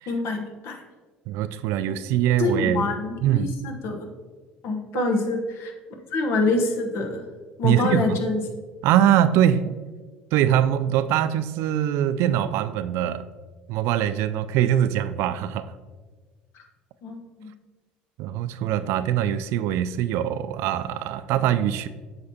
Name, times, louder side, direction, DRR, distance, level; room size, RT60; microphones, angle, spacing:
voice 1, 0.1-0.8 1.8-1.9 2.4-4.1 4.6-5.7 6.1-7.2 7.6-8.4 17.0-17.5, left 3 dB, 60° left, 3 dB, 1.0 m, -26 dB
voice 2, 1.3-2.9 3.2-3.6 4.9-5.1 7.6-8.2 8.8-9.8 10.3-13.2 13.7-15.7 18.2-21.9, right 11 dB, 65° right, 13 dB, 0.3 m, -23 dB
7.9 x 5.7 x 2.8 m, 1.4 s
hypercardioid pair, 65°, 5 cm